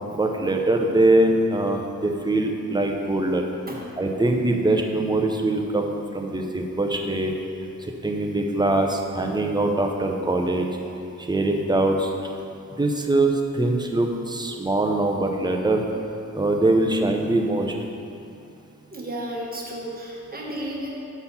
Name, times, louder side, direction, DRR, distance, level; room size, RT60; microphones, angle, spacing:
voice 1, 0.1-3.5 4.0-7.3 7.8-10.7 11.3-12.1 12.8-15.8 16.3-17.7, right 2 dB, 15° right, 2 dB, 0.6 m, -22 dB
voice 2, 18.9-20.9, right 1 dB, 30° right, -3 dB, 1.3 m, -33 dB
6.9 x 4.1 x 5.6 m, 2.6 s
wide cardioid pair, 110°, 31 cm